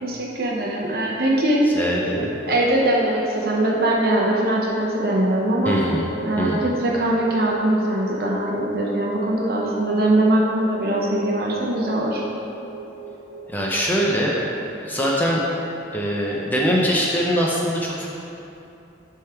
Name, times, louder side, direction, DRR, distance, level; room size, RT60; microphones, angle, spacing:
voice 1, 0.0-1.6 2.2-5.8 6.2-12.2, right 1 dB, 55° right, -3 dB, 0.8 m, -22 dB
sound 1, 0.9-15.2, equal, 30° left, 1.1 m, -34 dB
voice 2, 1.7-2.3 5.6-6.0 6.4-6.6 13.5-14.4 14.8-15.4 15.9-18.1, equal, 10° left, -4 dB, 0.7 m, -22 dB
11.0 x 3.7 x 4.4 m, 2.7 s
head